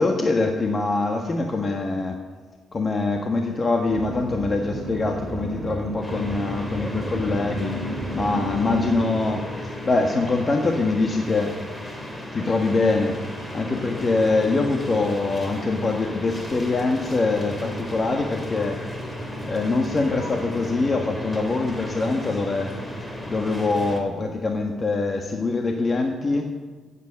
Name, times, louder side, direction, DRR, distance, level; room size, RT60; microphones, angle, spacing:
voice 1, 0.0-2.2 2.7-7.8 8.1-11.6 12.3-13.2 13.5-18.8 19.5-22.7 23.3-26.4, left 3 dB, 35° left, 3 dB, 1.4 m, -24 dB
sound 1, 3.9-9.1, equal, 10° right, 5.3 m, -32 dB
sound 2, 6.0-24.0, left 1 dB, 20° left, 3.0 m, -34 dB
15.5 x 8.4 x 7.4 m, 1.5 s
cardioid pair, 90°, 0 cm